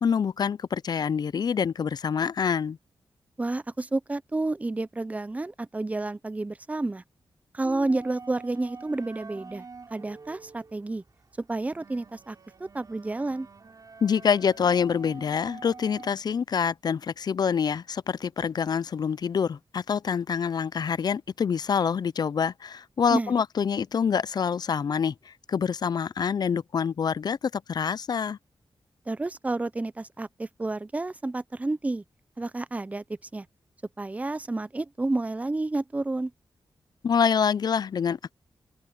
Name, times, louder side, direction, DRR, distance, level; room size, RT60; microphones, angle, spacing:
voice 1, 0.0-2.8 14.0-28.4 37.0-38.3, left 6 dB, 50° left, 0.4 m, -26 dB
voice 2, 3.4-7.0 7.5-9.7 9.9-11.0 11.4-13.5 23.1-23.3 29.1-32.0 32.4-33.0 33.3-33.5 34.0-36.3, right 2 dB, 15° right, 0.6 m, -30 dB
sound 1, 7.6-16.1, right 4 dB, 40° right, 5.8 m, -46 dB
open air
wide cardioid pair, 120°, 9 cm